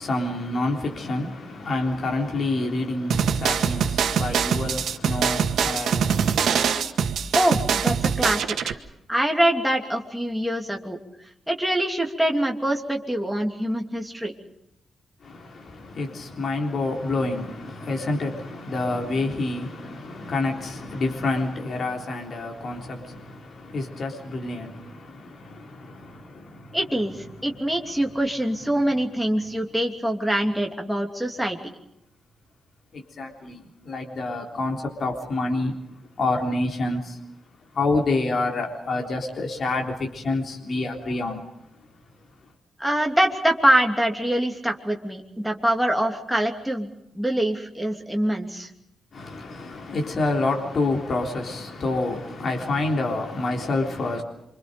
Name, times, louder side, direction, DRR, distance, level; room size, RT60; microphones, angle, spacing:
voice 1, 0.0-6.6 15.2-26.8 27.5-27.6 32.9-35.8 36.2-37.2 37.7-41.4 49.1-54.2, left 2 dB, 45° left, 3.7 m, -28 dB
sound 1, 3.1-8.7, right 7 dB, 85° right, 1.8 m, -23 dB
voice 2, 7.3-8.8 9.1-11.0 11.5-14.3 26.7-31.6 42.8-46.9 47.1-48.7, right 1 dB, ahead, 2.8 m, -24 dB
28.0 x 26.0 x 5.2 m
wide cardioid pair, 165°, 0 cm